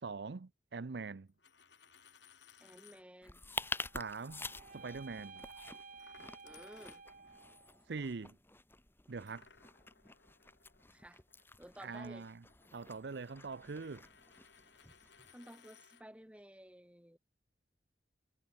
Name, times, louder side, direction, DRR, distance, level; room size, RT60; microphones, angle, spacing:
voice 1, 0.0-1.3 3.9-4.4 4.7-5.4 7.9-8.4 9.1-9.5 11.8-12.4 12.7-14.1, right 4 dB, 70° right, 0.6 m, -43 dB
Coin (dropping), 1.3-3.0 3.7-3.9 6.0-7.4 9.3-16.0, left 6 dB, 75° left, 4.8 m, -63 dB
voice 2, 2.6-3.4 6.4-7.0 10.9-11.2 11.6-12.3 15.3-17.2, equal, 5° right, 3.5 m, -54 dB
sound 1, 3.2-15.3, left 3 dB, 10° left, 3.0 m, -48 dB
sound 2, 3.5-7.8, right 4 dB, 45° right, 3.1 m, -54 dB
head